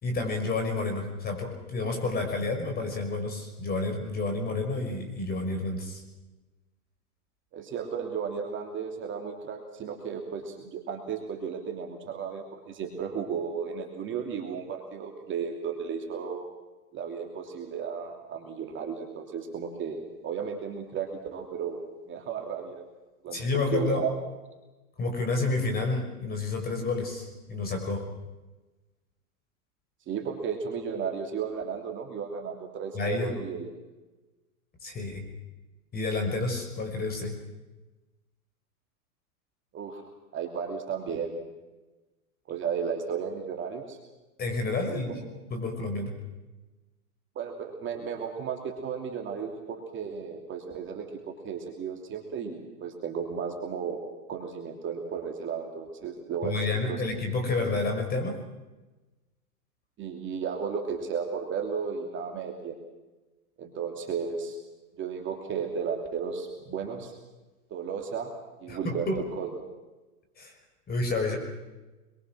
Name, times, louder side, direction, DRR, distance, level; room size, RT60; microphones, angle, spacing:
voice 1, 0.0-6.0 23.3-24.0 25.0-28.0 32.9-33.4 34.8-35.2 35.9-37.3 44.4-45.2 45.5-46.1 56.4-58.4 68.7-69.2 70.4-70.5 70.9-71.4, left 3 dB, 20° left, 4 dB, 5.9 m, -30 dB
voice 2, 7.5-16.4 16.9-21.8 22.1-22.8 23.2-24.1 30.1-33.7 39.7-40.0 40.3-41.4 42.5-44.0 44.9-45.2 47.3-56.6 56.8-57.0 60.0-62.8 63.6-64.6 65.0-67.1 67.7-68.3 68.6-69.1 69.4-69.5, right 6 dB, 25° right, 2 dB, 3.0 m, -34 dB
26.0 x 23.0 x 6.3 m, 1.1 s
hypercardioid pair, 120°, 45 cm